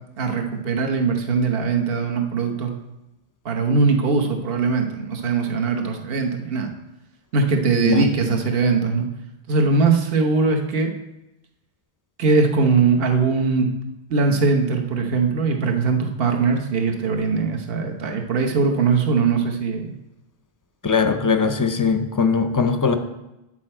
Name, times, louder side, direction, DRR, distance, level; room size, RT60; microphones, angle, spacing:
voice 1, 0.2-2.7 3.4-6.7 7.3-9.1 9.5-10.9 12.2-13.7 14.1-20.0, right 4 dB, 70° right, 3 dB, 1.1 m, -21 dB
voice 2, 7.8-8.4 20.8-22.9, left 5 dB, 30° left, 8 dB, 0.4 m, -20 dB
8.5 x 6.2 x 4.3 m, 0.94 s
omnidirectional pair, 1.0 m